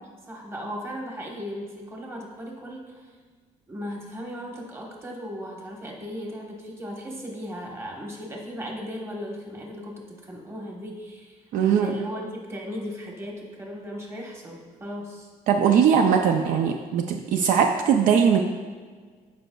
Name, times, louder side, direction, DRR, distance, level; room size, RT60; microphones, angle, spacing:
voice 1, 0.3-3.1 3.7-11.4 11.6-15.3, equal, 20° right, -1 dB, 1.2 m, -36 dB
voice 2, 11.5-11.9 15.5-18.4, right 7 dB, 65° right, 4 dB, 0.5 m, -20 dB
14.5 x 5.1 x 2.3 m, 1.5 s
cardioid pair, 160°, 15 cm